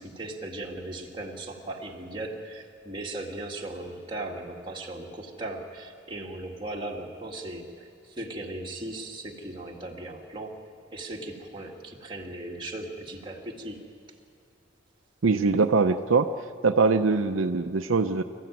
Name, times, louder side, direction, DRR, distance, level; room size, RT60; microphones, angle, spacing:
voice 1, 0.0-10.6 10.9-13.8, right 2 dB, 25° right, -1 dB, 2.1 m, -37 dB
voice 2, 15.2-16.3 16.6-18.2, right 4 dB, 80° right, 7 dB, 0.7 m, -22 dB
25.0 x 14.5 x 9.3 m, 2.3 s
head